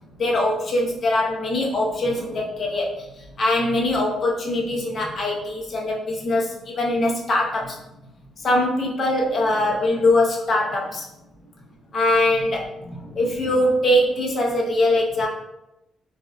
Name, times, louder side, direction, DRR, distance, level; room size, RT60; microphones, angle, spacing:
voice 1, 0.2-7.8 8.4-11.1 11.9-15.3, left 1 dB, 50° left, -1 dB, 0.5 m, -22 dB
2.6 x 2.0 x 2.3 m, 0.91 s
cardioid pair, 90°, 0 cm